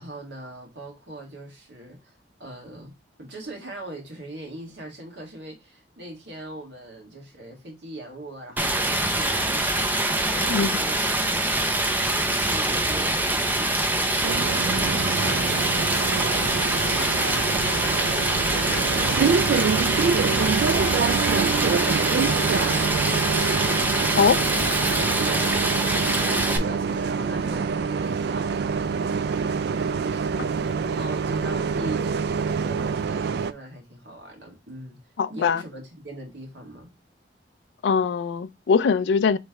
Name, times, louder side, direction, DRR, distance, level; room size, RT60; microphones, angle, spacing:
voice 1, 0.0-15.6 16.1-24.7 24.9-35.0 35.3-36.9, right 1 dB, 80° right, 1.7 m, -41 dB
Stream, 8.6-26.6, right 1 dB, 10° right, 0.5 m, -24 dB
Bus, 14.2-33.5, right 5 dB, 65° right, 0.3 m, -26 dB
sound 1, 15.3-24.0 24.4-24.5, left 2 dB, 10° left, 1.3 m, -40 dB
voice 2, 35.2-35.6 37.8-39.4, left 5 dB, 75° left, 0.3 m, -21 dB
3.2 x 3.0 x 4.7 m
head